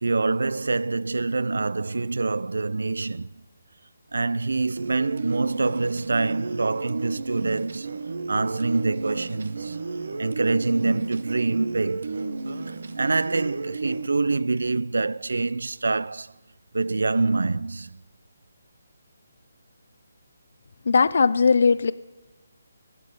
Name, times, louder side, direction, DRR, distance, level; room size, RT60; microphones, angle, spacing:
voice 1, 0.0-3.3 4.1-7.9 8.3-9.8 10.2-12.2 12.7-16.3 16.7-18.0, right 3 dB, 90° right, 0.3 m, -25 dB
sound 1, 4.8-14.1, right 3 dB, 70° right, 0.8 m, -33 dB
voice 2, 20.9-21.9, left 5 dB, 60° left, 0.4 m, -18 dB
17.5 x 6.8 x 6.5 m
hypercardioid pair, 165°, 0 cm